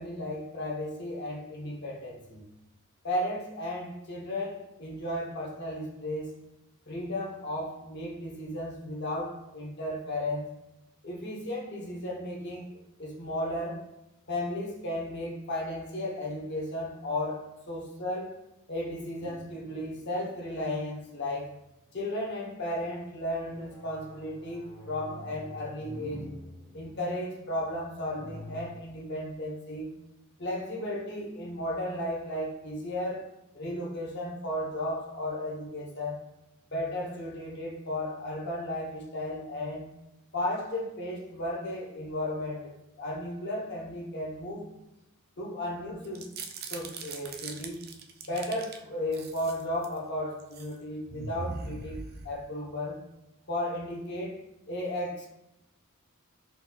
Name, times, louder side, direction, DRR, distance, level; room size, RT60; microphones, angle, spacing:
voice 1, 0.0-2.5 3.0-6.4 6.9-10.5 11.0-13.9 14.3-18.4 18.7-21.5 21.9-26.3 26.7-29.9 30.4-33.3 33.5-36.2 36.7-39.9 40.3-44.7 45.4-46.3 46.7-47.9 48.3-53.1 53.5-55.3, left 1 dB, 50° left, 0.9 m, -34 dB
sound 1, 19.2-21.0 21.5-22.0 22.8-28.7, equal, 25° left, 1.0 m, -47 dB
sound 2, 46.0-48.8 49.1-50.0 50.4-50.7 51.1-52.7, right 3 dB, 45° right, 0.4 m, -41 dB
4.3 x 4.1 x 2.3 m
head